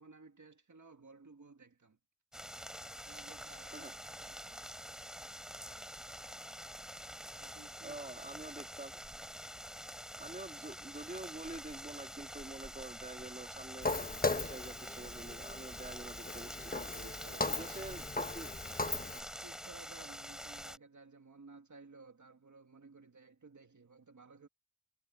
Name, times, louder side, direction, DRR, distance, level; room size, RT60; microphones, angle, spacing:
voice 1, 0.0-2.0 3.0-4.6 7.3-8.7 16.3-17.6 17.9-18.1 19.4-24.5, right 3 dB, 55° right, 2.2 m, -57 dB
sound 1, 2.3-20.8, equal, ahead, 4.0 m, -47 dB
voice 2, 7.8-8.9 10.2-16.7 17.4-18.5, right 2 dB, 20° right, 2.7 m, -47 dB
Walk footsteps, 13.8-19.2, left 3 dB, 25° left, 1.2 m, -38 dB
wide cardioid pair, 90°, 36 cm